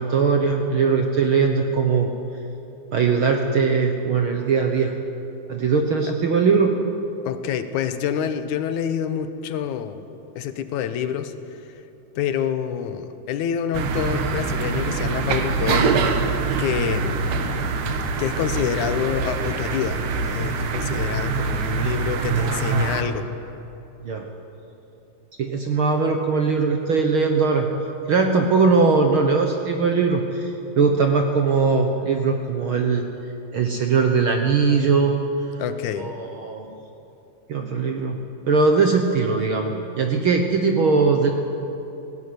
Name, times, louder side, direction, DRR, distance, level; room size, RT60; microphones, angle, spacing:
voice 1, 0.0-2.1 2.9-4.9 5.5-6.8 22.4-23.1 24.0-24.3 25.4-27.7 28.1-33.1 33.5-35.1 36.0-36.7 37.5-38.2 38.5-41.3, right 4 dB, 55° right, 3 dB, 1.5 m, -20 dB
voice 2, 7.3-10.1 10.4-11.3 11.7-11.8 12.2-16.0 16.6-17.3 18.2-23.3 35.6-36.1, left 9 dB, 75° left, 10 dB, 2.3 m, -27 dB
sound 1, 13.7-23.0, right 4 dB, 85° right, 2.9 m, -24 dB
18.0 x 16.5 x 9.6 m, 2.9 s
omnidirectional pair, 3.6 m